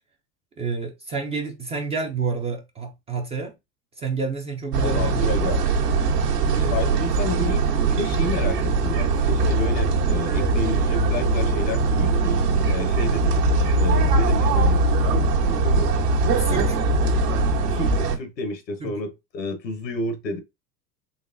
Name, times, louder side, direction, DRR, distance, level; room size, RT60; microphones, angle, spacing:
voice 1, 0.6-3.5 4.0-5.5 6.6-6.9 16.4-16.8 18.8-18.9, right 4 dB, 15° right, 0.4 m, -29 dB
sound 1, 4.7-18.2, right 3 dB, 70° right, 1.3 m, -21 dB
voice 2, 4.8-5.6 6.4-13.4 13.8-14.8 15.1-15.9 17.7-20.4, left 2 dB, 85° left, 1.1 m, -31 dB
3.9 x 3.1 x 2.6 m
hypercardioid pair, 90°, 49 cm